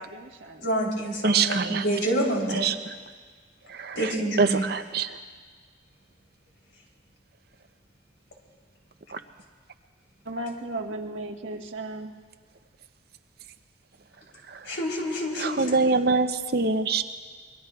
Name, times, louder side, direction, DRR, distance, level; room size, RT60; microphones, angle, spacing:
voice 1, 0.0-0.7 10.2-12.1, right 1 dB, 85° right, 1 dB, 1.4 m, -35 dB
voice 2, 0.6-2.6 3.9-4.6 14.7-15.6, right 1 dB, 70° left, -1 dB, 3.5 m, -27 dB
voice 3, 1.2-1.8 2.5-2.8 3.7-5.2 9.1-9.2 14.5-14.7 15.3-17.0, right 4 dB, 55° right, 9 dB, 0.6 m, -25 dB
26.5 x 22.5 x 2.4 m, 1.5 s
head